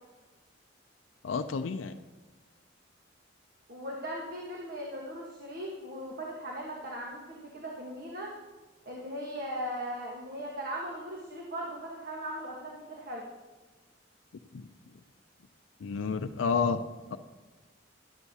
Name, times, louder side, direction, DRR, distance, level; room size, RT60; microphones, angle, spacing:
voice 1, 1.2-2.0 14.5-14.7 15.8-16.8 17.1-17.2, left 5 dB, 85° left, 8 dB, 0.4 m, -30 dB
voice 2, 3.7-8.3 8.8-13.2, equal, 55° right, -2 dB, 1.3 m, -38 dB
12.5 x 11.0 x 2.8 m, 1.2 s
head